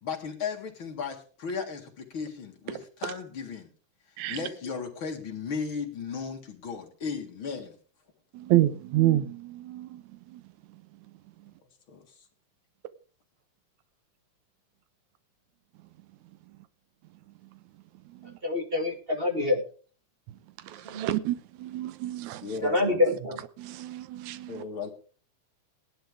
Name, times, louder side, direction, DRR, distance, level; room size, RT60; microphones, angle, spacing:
voice 1, 0.0-3.7 4.3-7.8 11.9-12.0 22.4-23.0 24.5-24.9, left 5 dB, 45° left, 2.4 m, -35 dB
voice 2, 8.3-10.4 18.1-18.4 20.6-22.5 23.1-23.2 23.6-24.6, right 14 dB, 75° right, 2.2 m, -29 dB
voice 3, 18.4-19.6 20.8-21.1 22.6-23.4, left 2 dB, 25° right, 1.6 m, -26 dB
18.0 x 11.5 x 3.6 m
omnidirectional pair, 3.4 m